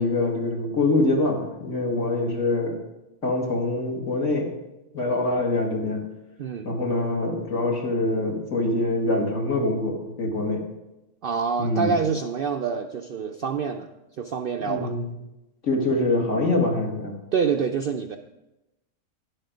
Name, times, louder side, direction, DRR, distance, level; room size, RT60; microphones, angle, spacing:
voice 1, 0.0-2.8 3.2-4.5 4.9-6.0 6.6-10.6 11.6-11.9 14.6-15.1 15.6-17.2, left 2 dB, 65° left, 0 dB, 2.2 m, -24 dB
voice 2, 11.2-13.9 14.2-14.9 17.3-18.2, right 6 dB, 65° right, 5 dB, 0.5 m, -26 dB
10.5 x 7.9 x 5.0 m, 0.97 s
omnidirectional pair, 1.4 m